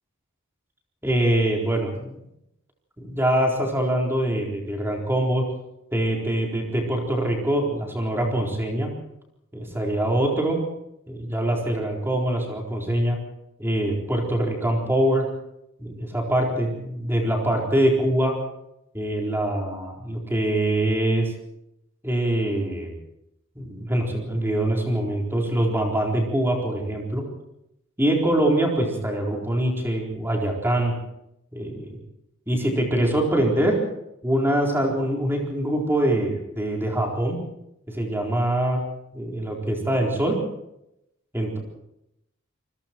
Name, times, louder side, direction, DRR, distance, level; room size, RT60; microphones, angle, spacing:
voice 1, 1.0-2.2 3.0-5.4 5.9-8.9 9.5-10.6 11.1-13.2 13.6-15.3 15.8-18.3 18.9-21.3 22.0-22.9 23.6-27.2 28.0-30.9 31.5-32.0 32.5-33.8 34.2-37.4 37.9-38.8 39.1-40.4 41.3-41.6, right 1 dB, 10° right, 0 dB, 4.2 m, -24 dB
28.0 x 21.0 x 4.6 m, 0.83 s
head